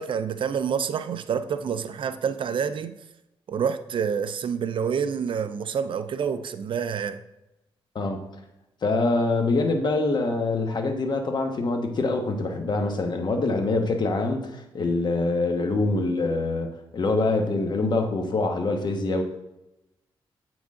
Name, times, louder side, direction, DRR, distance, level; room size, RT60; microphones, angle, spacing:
voice 1, 0.0-3.0 3.5-7.2, right 7 dB, 60° right, 0.5 m, -28 dB
voice 2, 8.8-19.2, left 3 dB, 50° left, 1.2 m, -25 dB
8.1 x 6.2 x 3.7 m
cardioid pair, 120°, 10 cm